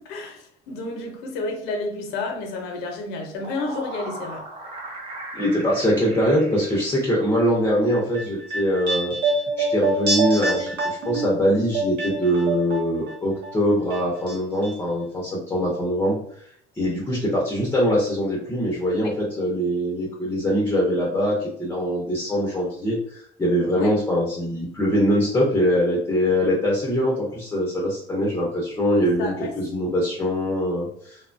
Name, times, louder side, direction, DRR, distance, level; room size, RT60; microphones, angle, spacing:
voice 1, 0.0-4.5 19.0-19.1 23.7-23.9 29.0-29.5, left 2 dB, 80° left, 0.7 m, -31 dB
sound 1, 3.2-7.6, right 2 dB, 35° right, 0.6 m, -38 dB
voice 2, 5.3-9.1 9.6-10.7 11.0-16.2 16.8-31.2, equal, 15° left, 0.6 m, -23 dB
sound 2, 7.9-13.1 13.4-14.4 14.6-14.7, right 2 dB, 80° right, 0.8 m, -26 dB
2.8 x 2.2 x 2.5 m
cardioid pair, 140°, 17 cm